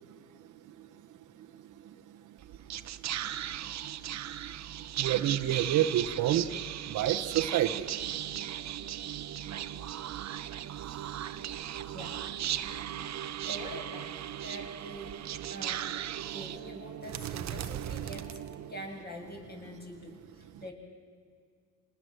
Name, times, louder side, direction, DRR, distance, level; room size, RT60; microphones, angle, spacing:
voice 1, 0.0-9.3 9.7-11.9 12.5-13.5 15.4-15.5 16.1-16.6 18.6-18.7 20.4-20.6, right 12 dB, 85° right, 7 dB, 1.2 m, -35 dB
Whispering, 2.4-19.0, right 11 dB, 65° right, 1.0 m, -37 dB
voice 2, 13.4-15.9 16.3-18.4 18.7-20.7, equal, 30° left, 0 dB, 7.9 m, -44 dB
27.5 x 20.0 x 7.9 m, 2.2 s
cardioid pair, 90°, 30 cm